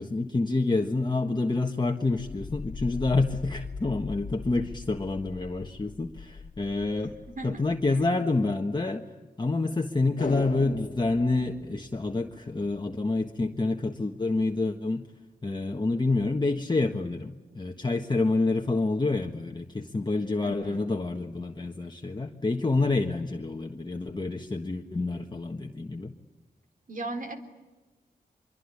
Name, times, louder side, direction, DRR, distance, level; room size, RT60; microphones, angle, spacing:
voice 1, 0.0-7.1 7.4-9.0 9.4-15.1 15.4-26.1, left 3 dB, 25° left, 3 dB, 1.5 m, -28 dB
sound 1, 2.0-8.1, left 5 dB, 80° left, 1.8 m, -41 dB
voice 2, 7.3-8.0 20.4-20.9 26.9-27.3, right 2 dB, 55° right, 6 dB, 3.8 m, -38 dB
sound 2, 10.2-12.7 12.9-13.0, left 3 dB, 55° left, 1.6 m, -38 dB
25.0 x 23.5 x 9.9 m, 1.2 s
wide cardioid pair, 90°, 16 cm